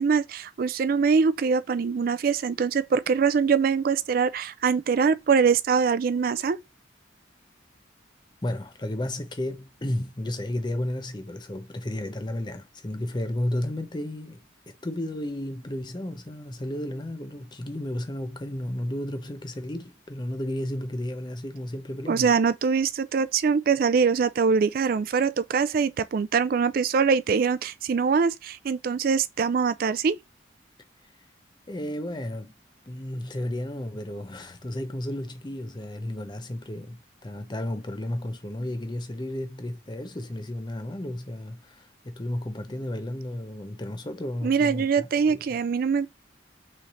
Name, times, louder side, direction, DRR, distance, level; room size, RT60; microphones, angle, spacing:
voice 1, 0.0-6.6 22.1-30.2 44.4-46.1, right 5 dB, 50° right, 0.3 m, -23 dB
voice 2, 8.4-22.3 31.7-32.5 32.9-45.4, left 1 dB, 25° left, 0.6 m, -33 dB
3.8 x 3.2 x 4.1 m
head